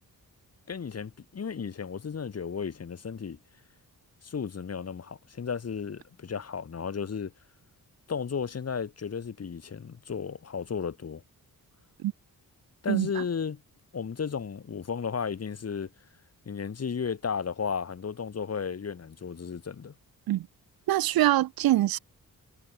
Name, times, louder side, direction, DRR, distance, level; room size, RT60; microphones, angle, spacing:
voice 1, 0.7-3.4 4.2-7.3 8.1-11.2 12.8-13.6 13.9-15.9 16.5-19.9, left 6 dB, 45° left, 2.2 m, -34 dB
voice 2, 12.9-13.2 20.3-20.5 20.9-22.0, right 14 dB, 75° right, 0.5 m, -24 dB
wide cardioid pair, 135°, 36 cm